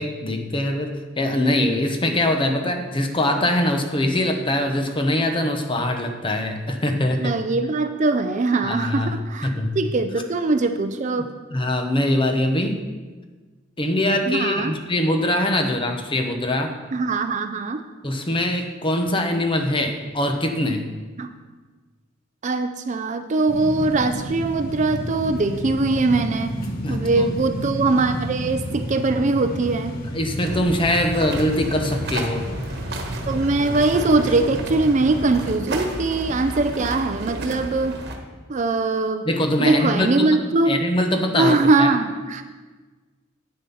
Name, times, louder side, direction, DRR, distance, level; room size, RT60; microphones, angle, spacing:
voice 1, 0.0-7.3 8.6-9.1 9.4-9.8 11.5-12.8 13.8-16.8 18.0-20.9 26.8-27.3 30.1-32.5 39.2-41.9, left 1 dB, 25° left, 5 dB, 0.9 m, -23 dB
voice 2, 7.2-11.3 14.3-14.8 16.9-17.8 21.2-21.3 22.4-26.6 26.9-30.0 33.2-38.0 38.5-39.3 39.6-40.9 41.3-42.4, right 3 dB, 40° right, 8 dB, 0.5 m, -21 dB
sound 1, 23.5-35.5, equal, 50° left, 1.2 m, -31 dB
sound 2, 30.4-38.2, right 1 dB, 55° right, 1.3 m, -32 dB
8.7 x 7.4 x 5.5 m, 1.3 s
head